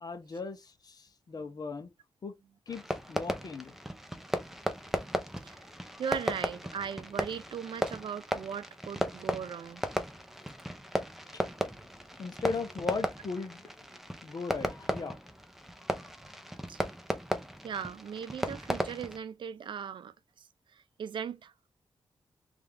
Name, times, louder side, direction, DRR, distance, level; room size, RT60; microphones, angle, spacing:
voice 1, 0.0-1.9 2.2-2.3 2.7-3.8 11.3-11.4 12.2-13.6 14.2-15.2, left 4 dB, 45° left, 0.9 m, -38 dB
Fireworks, 2.7-19.2, equal, 5° right, 0.7 m, -36 dB
voice 2, 6.0-9.8 16.7-16.8 17.6-21.5, right 7 dB, 65° right, 0.4 m, -39 dB
3.5 x 3.4 x 3.4 m
wide cardioid pair, 110°, 9 cm